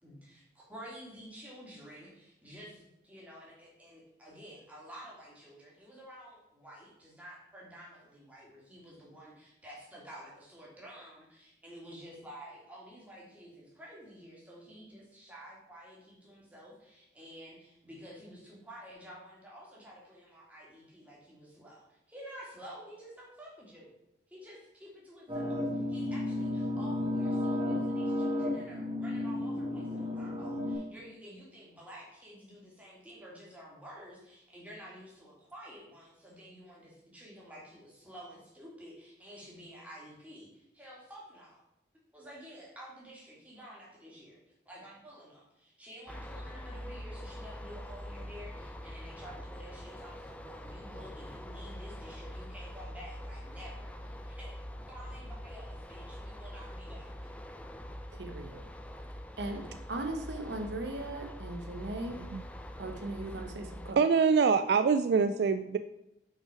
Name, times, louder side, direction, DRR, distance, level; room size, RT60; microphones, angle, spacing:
voice 1, 0.0-23.9 24.3-41.6 42.1-54.6 54.9-57.3, equal, 10° right, -5 dB, 2.3 m, -50 dB
sound 1, 25.3-30.7, left 1 dB, 30° right, 1.9 m, -33 dB
sound 2, 46.1-63.9, equal, 10° left, 0.4 m, -44 dB
voice 2, 58.1-58.6 59.4-62.2 62.8-64.0, right 2 dB, 85° right, 5 dB, 0.9 m, -38 dB
voice 3, 64.0-65.8, right 5 dB, 70° right, 10 dB, 0.3 m, -24 dB
5.9 x 5.5 x 4.9 m, 0.84 s
head